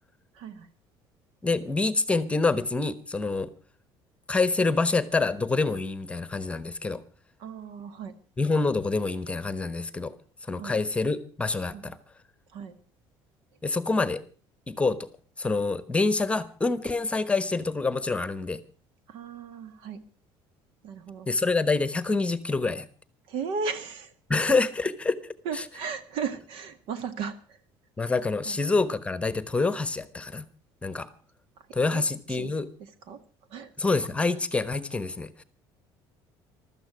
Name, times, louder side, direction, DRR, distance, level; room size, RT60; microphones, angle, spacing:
voice 1, 0.3-0.7 7.4-8.1 10.5-10.8 11.7-11.9 12.5-12.7 19.1-20.0 20.8-21.3 23.3-24.1 25.4-27.6 28.4-28.6 31.6-32.0 32.3-32.5 32.8-33.2 33.5-33.7, right 6 dB, 75° right, 12 dB, 1.9 m, -36 dB
voice 2, 1.4-3.5 4.3-7.0 8.4-10.2 10.5-12.0 13.6-14.2 14.7-15.1 15.4-18.6 21.3-22.9 24.3-25.6 28.0-30.4 30.8-31.1 31.7-32.7 33.8-35.4, left 3 dB, 15° left, 14 dB, 1.1 m, -26 dB
15.5 x 13.0 x 6.2 m, 0.39 s
cardioid pair, 125°, 9 cm